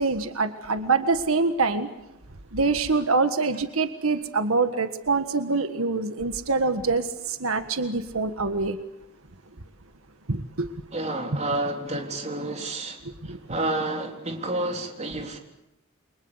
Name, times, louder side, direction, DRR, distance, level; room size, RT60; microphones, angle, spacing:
voice 1, 0.0-1.9 2.5-8.8 10.3-10.7 13.3-13.4, right 4 dB, 85° right, 8 dB, 1.6 m, -25 dB
voice 2, 10.9-13.0 13.2-15.4, right 2 dB, 30° right, 3 dB, 3.7 m, -30 dB
29.5 x 24.5 x 8.1 m, 0.89 s
head